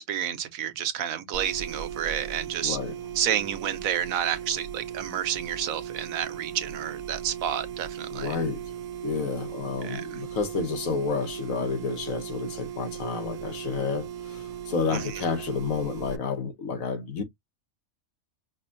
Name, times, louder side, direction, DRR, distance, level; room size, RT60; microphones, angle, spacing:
voice 1, 0.0-2.8 3.1-8.4 9.8-10.1 14.9-15.1, right 9 dB, 85° right, 1.2 m, -30 dB
sound 1, 1.3-16.2, right 9 dB, 60° right, 0.8 m, -38 dB
voice 2, 2.6-2.9 8.1-8.7 9.0-17.2, left 5 dB, 85° left, 1.4 m, -30 dB
5.3 x 2.4 x 2.5 m
omnidirectional pair, 1.4 m